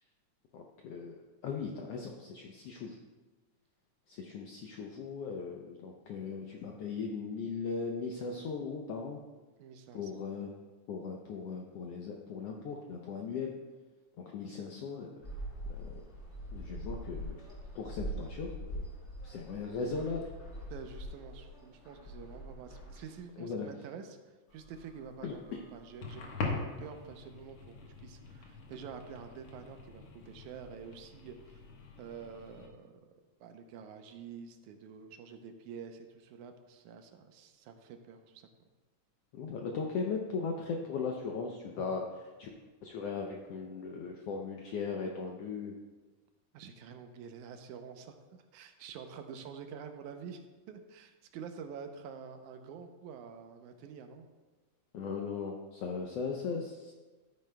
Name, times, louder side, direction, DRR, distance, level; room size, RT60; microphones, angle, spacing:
voice 1, 0.5-3.0 4.1-9.2 9.9-10.5 10.9-13.5 14.2-15.2 15.7-16.0 16.5-17.4 17.7-18.8 19.2-20.3 23.4-23.7 25.2-25.6 39.3-42.5 42.8-45.8 54.9-56.9, left 5 dB, 80° left, 1 dB, 1.4 m, -38 dB
voice 2, 9.6-10.1 20.7-31.6 32.0-32.9 33.4-38.5 46.5-48.2 48.5-54.3, right 6 dB, 80° right, 6 dB, 2.1 m, -48 dB
sound 1, 15.2-23.2, equal, 30° left, 1.6 m, -43 dB
sound 2, 24.5-32.7, left 3 dB, 55° left, 1.8 m, -43 dB
12.5 x 9.3 x 2.2 m, 1.3 s
omnidirectional pair, 3.5 m